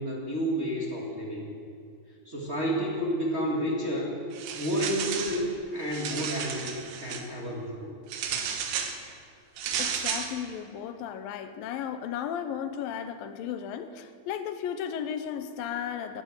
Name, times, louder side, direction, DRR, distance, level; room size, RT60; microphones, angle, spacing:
voice 1, 0.0-1.5 2.2-4.1 4.6-7.9, equal, 30° right, -4 dB, 1.2 m, -30 dB
sound 1, 4.3-5.4 5.8-7.2 8.1-9.0 9.6-10.3, right 7 dB, 85° right, 3.3 m, -33 dB
voice 2, 9.8-16.2, left 8 dB, 80° left, 10 dB, 2.2 m, -35 dB
17.0 x 11.0 x 7.3 m, 2.3 s
omnidirectional pair, 4.7 m